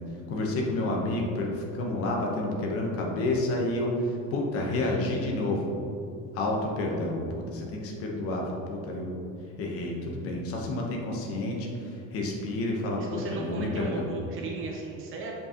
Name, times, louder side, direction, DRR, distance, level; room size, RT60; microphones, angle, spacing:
voice 1, 0.3-5.7 6.3-9.1 9.6-14.1, left 2 dB, 45° left, -1 dB, 1.0 m, -30 dB
voice 2, 13.0-15.3, right 2 dB, 40° right, -1 dB, 0.9 m, -36 dB
7.3 x 5.4 x 2.9 m, 2.5 s
cardioid pair, 165°, 34 cm